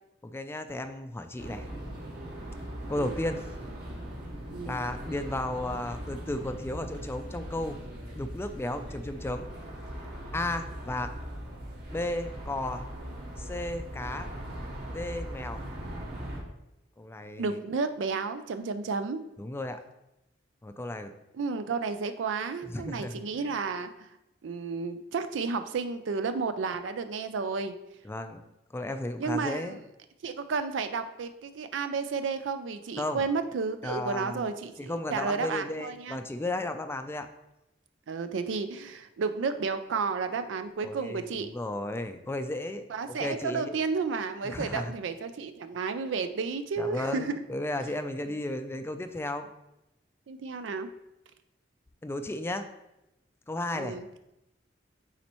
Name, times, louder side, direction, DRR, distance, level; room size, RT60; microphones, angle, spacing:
voice 1, 0.2-1.7 2.9-3.4 4.6-7.8 8.2-9.5 10.3-11.1 11.9-12.8 13.4-14.3 14.9-15.6 17.0-17.6 19.4-19.8 20.6-21.1 22.6-23.2 28.0-28.4 28.7-29.8 33.0-33.2 33.8-34.5 34.8-37.3 40.8-43.8 44.4-44.9 46.8-49.5 52.0-52.7 53.5-54.0, left 1 dB, 15° left, 8 dB, 0.4 m, -34 dB
sound 1, 1.4-16.4, equal, 60° right, 1.6 m, -40 dB
voice 2, 17.4-19.2 21.3-24.1 24.4-27.7 29.2-29.8 30.2-36.2 38.1-41.5 42.9-47.4 50.3-50.9 53.7-54.0, right 4 dB, 85° right, 10 dB, 0.4 m, -32 dB
9.4 x 4.2 x 3.0 m, 0.89 s
head